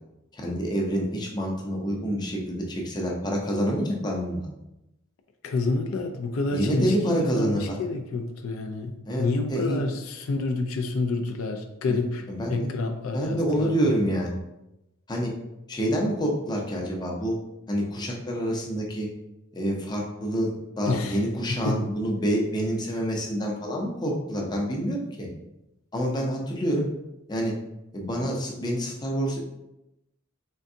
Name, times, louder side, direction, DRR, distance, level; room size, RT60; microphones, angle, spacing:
voice 1, 0.3-4.5 6.5-7.8 9.1-9.8 12.3-12.6 13.1-14.4 15.1-15.3 15.7-17.4 17.7-19.1 19.5-20.5 20.8-25.3 25.9-26.9 27.3-27.5 27.9-29.4, equal, 20° left, -1 dB, 0.6 m, -27 dB
voice 2, 5.4-14.0 20.9-21.2 21.5-21.8, left 3 dB, 75° left, 5 dB, 0.4 m, -29 dB
3.8 x 3.3 x 2.6 m, 0.91 s
head